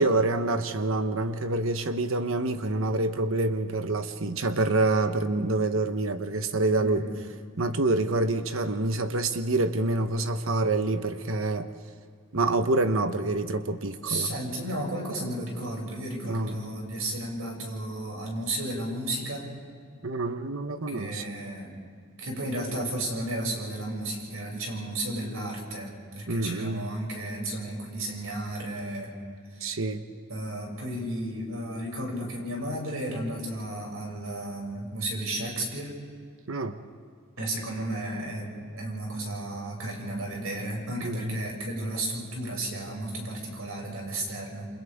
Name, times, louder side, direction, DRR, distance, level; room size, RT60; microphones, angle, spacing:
voice 1, 0.0-7.0 7.6-11.7 12.3-14.3 16.3-16.7 20.0-21.2 26.3-26.9 29.6-30.0 36.5-36.8 41.0-41.4, right 2 dB, 70° right, 8 dB, 1.1 m, -27 dB
voice 2, 6.8-7.1 14.0-19.6 20.9-21.7 22.2-29.1 29.5-29.8 30.3-35.9 37.4-44.7, right 1 dB, 85° right, -1 dB, 6.7 m, -33 dB
28.5 x 27.0 x 3.6 m, 2.2 s
head